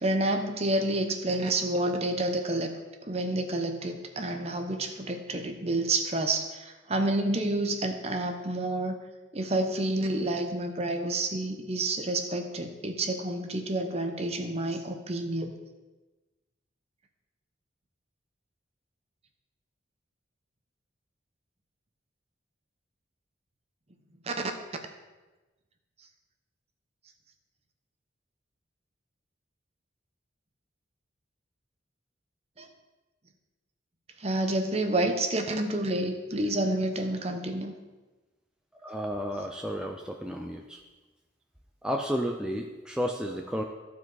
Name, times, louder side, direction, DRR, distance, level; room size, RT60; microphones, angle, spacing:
voice 1, 0.0-2.8 3.1-9.0 9.3-15.5 24.3-24.5 32.6-32.7 34.2-37.7, right 2 dB, 35° right, 5 dB, 0.8 m, -29 dB
voice 2, 38.8-40.8 41.8-43.6, equal, 5° right, 2 dB, 0.4 m, -32 dB
14.0 x 4.7 x 4.0 m, 1.2 s
head